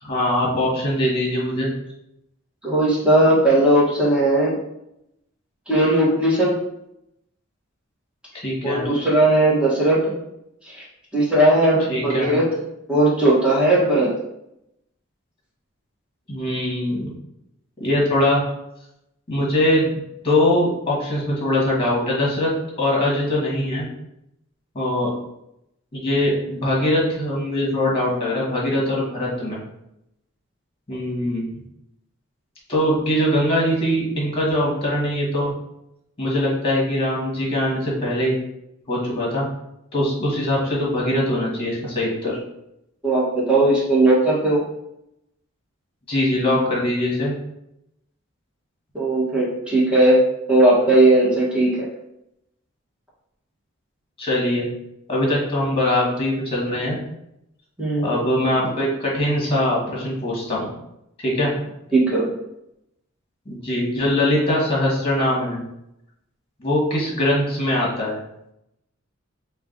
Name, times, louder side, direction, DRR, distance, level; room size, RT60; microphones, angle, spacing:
voice 1, 0.0-1.7 8.3-8.9 11.9-12.3 16.3-17.1 17.8-18.4 19.3-20.0 20.2-22.5 22.8-23.9 24.7-25.1 25.9-29.6 30.9-31.4 32.7-35.5 36.2-38.3 38.9-39.4 39.9-42.4 46.1-47.3 54.2-54.6 55.1-57.0 58.0-60.7 61.2-61.5 63.4-65.6 66.6-68.2, left 1 dB, 30° left, -4 dB, 1.5 m, -22 dB
voice 2, 2.6-4.5 5.7-6.6 8.6-10.1 10.7-10.8 11.1-12.5 12.9-14.1 43.0-44.6 48.9-50.2 50.5-51.9 57.8-58.2 61.9-62.3, right 1 dB, 5° right, -7 dB, 1.3 m, -17 dB
4.5 x 2.4 x 3.8 m, 0.82 s
head